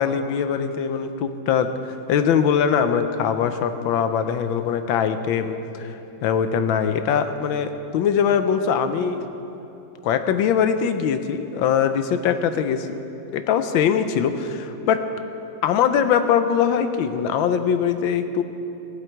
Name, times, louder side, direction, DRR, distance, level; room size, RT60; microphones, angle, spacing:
voice 1, 0.0-6.0 6.2-9.3 10.0-13.0 13.3-15.0 15.6-18.4, left 7 dB, 85° left, 9 dB, 1.5 m, -22 dB
15.5 x 11.5 x 4.6 m, 2.9 s
omnidirectional pair, 2.1 m